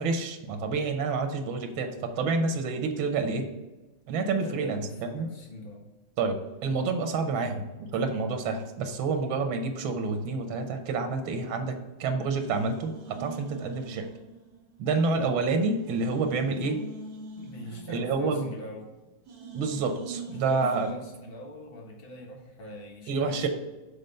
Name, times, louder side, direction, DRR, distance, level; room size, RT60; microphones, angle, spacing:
voice 1, 0.0-3.4 4.1-5.3 6.2-14.1 14.8-16.8 17.9-18.5 19.5-20.9 23.1-23.5, right 4 dB, 90° right, 6 dB, 1.7 m, -28 dB
voice 2, 4.4-5.9 7.3-7.5 17.3-18.9 20.4-23.5, left 1 dB, 30° left, 0 dB, 1.3 m, -42 dB
sound 1, 11.9-12.0 12.3-14.9 15.2-15.3 15.8-18.9 19.3-20.9, right 4 dB, 70° right, 2.0 m, -44 dB
6.6 x 4.2 x 5.5 m, 1.1 s
omnidirectional pair, 2.1 m